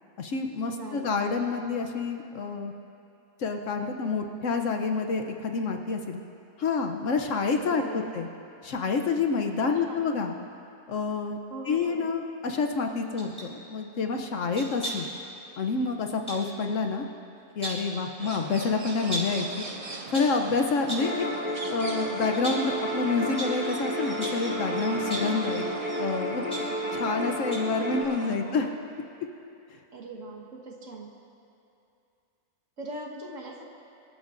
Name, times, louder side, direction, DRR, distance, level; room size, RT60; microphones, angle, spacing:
voice 1, 0.2-2.7 3.4-6.2 6.6-8.3 8.6-10.3 10.9-11.4 11.6-15.1 15.6-17.1 17.6-19.6 20.1-21.3 21.7-25.6 26.0-28.7, left 4 dB, 60° left, 4 dB, 1.0 m, -28 dB
voice 2, 0.7-1.2 7.7-8.4 9.6-10.1 11.5-12.1 28.2-28.8 29.9-31.1 32.8-33.6, right 2 dB, 55° right, 0 dB, 1.7 m, -41 dB
sound 1, 13.2-13.5 14.5-15.2 16.3-16.5 17.4-17.9 19.1-19.4 19.9-20.4 20.9-21.2 21.7-21.8 22.3-22.8 23.4-23.6 24.2-24.5 25.0-25.4 26.1-27.2 27.5-27.8 28.1-28.2, right 1 dB, 5° left, 3.5 m, -36 dB
sound 2, 18.2-28.4, right 3 dB, 35° right, 0.6 m, -40 dB
sound 3, 21.0-28.0, equal, 35° left, 2.8 m, -32 dB
24.5 x 13.5 x 2.6 m, 2.7 s
omnidirectional pair, 1.6 m